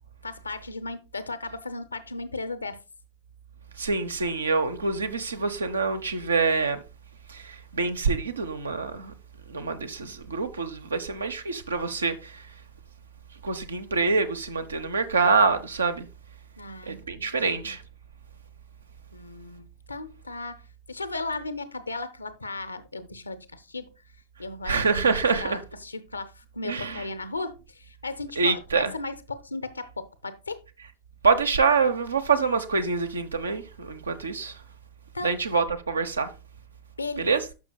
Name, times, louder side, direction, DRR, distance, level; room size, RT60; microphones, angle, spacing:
voice 1, 0.2-2.8 16.6-17.3 19.1-20.6 20.9-23.9 24.4-30.6 35.1-35.3 37.0-37.4, left 3 dB, 80° left, 0.8 m, -36 dB
voice 2, 3.8-6.8 7.3-9.1 9.5-12.5 13.4-16.1 16.9-17.8 24.6-25.6 26.6-27.0 28.4-28.9 31.2-34.6 35.2-36.3 37.2-37.4, right 4 dB, 75° right, 0.9 m, -26 dB
11.5 x 6.1 x 2.3 m
figure-of-eight pair, 90°, 0 cm